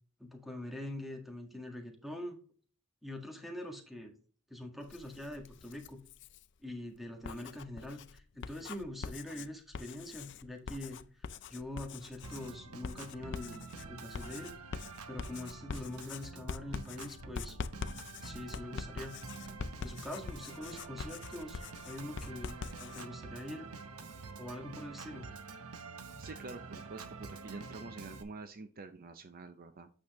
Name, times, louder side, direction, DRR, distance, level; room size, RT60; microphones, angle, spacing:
voice 1, 0.2-2.4 3.0-4.1 4.5-6.0 6.6-11.2 11.5-13.6 13.9-14.5 15.1-17.6 18.2-19.1 19.8-23.7 24.4-25.3, left 1 dB, ahead, 3 dB, 1.7 m, -44 dB
Writing, 4.8-6.5 7.1-23.1, left 5 dB, 55° left, 0.5 m, -44 dB
Organ, 12.2-28.2, right 4 dB, 90° right, 1.0 m, -47 dB
voice 2, 26.2-29.9, right 3 dB, 40° right, 10 dB, 0.6 m, -47 dB
8.6 x 6.2 x 3.1 m, 0.43 s
head